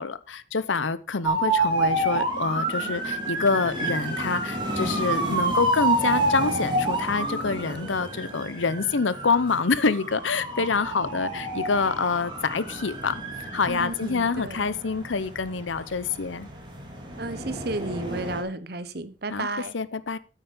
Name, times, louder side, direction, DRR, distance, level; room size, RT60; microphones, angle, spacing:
voice 1, 0.0-13.2 13.5-16.5 19.3-19.5 19.7-20.2, left 4 dB, 85° left, 0.8 m, -26 dB
sound 1, 1.2-18.4, right 2 dB, 25° right, 3.4 m, -29 dB
voice 2, 13.7-14.6 17.2-19.7, right 2 dB, 55° right, 1.1 m, -32 dB
9.4 x 9.0 x 5.1 m
head